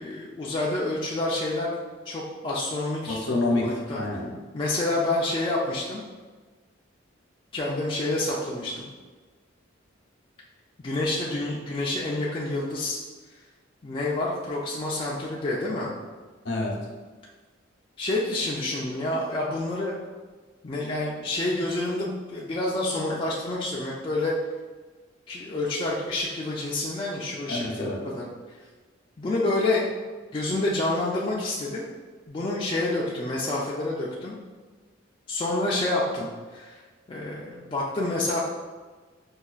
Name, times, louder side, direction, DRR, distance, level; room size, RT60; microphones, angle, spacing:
voice 1, 0.0-1.8 2.1-3.2 3.6-4.0 4.5-6.0 7.5-8.9 10.8-13.0 13.8-15.9 18.0-20.0 20.6-24.3 25.3-28.3 29.2-29.9 30.3-31.9 32.3-34.3 35.3-36.8 37.1-38.4, left 2 dB, 25° left, -5 dB, 0.4 m, -28 dB
voice 2, 3.1-4.4 16.4-16.7 27.5-28.0, left 2 dB, 60° left, -1 dB, 0.7 m, -27 dB
5.4 x 2.3 x 2.4 m, 1.4 s
head